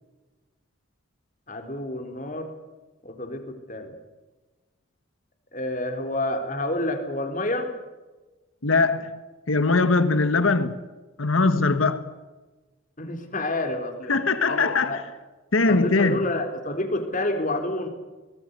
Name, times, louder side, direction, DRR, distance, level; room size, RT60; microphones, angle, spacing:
voice 1, 1.5-2.5 3.0-3.9 5.5-7.7 13.0-14.1 14.5-15.0 15.7-17.9, left 1 dB, 40° left, 3.7 m, -29 dB
voice 2, 8.6-9.2 9.5-10.8 11.2-12.0 14.1-15.0 15.5-16.2, left 3 dB, 80° left, 1.5 m, -21 dB
24.0 x 19.5 x 8.2 m
head